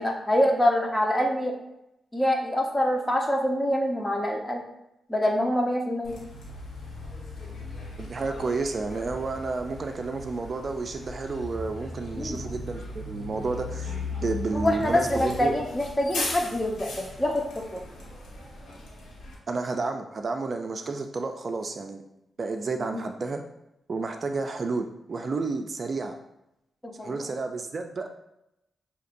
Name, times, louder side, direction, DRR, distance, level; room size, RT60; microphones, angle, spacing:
voice 1, 0.0-1.5 2.1-4.6 5.1-6.2 12.2-12.4 14.5-16.9 17.2-17.4 17.7-17.8 22.8-23.0 27.0-27.2, left 1 dB, 20° left, 0 dB, 1.0 m, -25 dB
Bus, 6.0-19.3, left 2 dB, 85° left, 1.3 m, -38 dB
voice 2, 8.0-15.5 19.5-22.0 22.4-23.4 23.9-26.2 27.0-28.1, right 3 dB, 55° right, 5 dB, 0.4 m, -31 dB
6.5 x 2.8 x 2.6 m, 0.86 s
cardioid pair, 60°, 0 cm